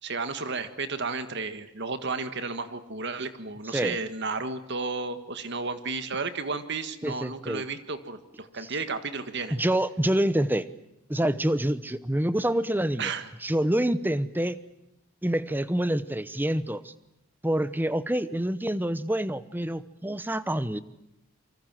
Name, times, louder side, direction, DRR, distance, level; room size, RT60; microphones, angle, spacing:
voice 1, 0.0-9.6 13.0-13.3, right 4 dB, 55° right, 10 dB, 1.8 m, -33 dB
voice 2, 7.0-7.6 9.5-10.7 11.1-13.1 13.4-14.6 15.2-16.9 17.4-20.8, right 1 dB, 10° right, 14 dB, 0.9 m, -27 dB
27.5 x 24.5 x 7.6 m, 0.85 s
head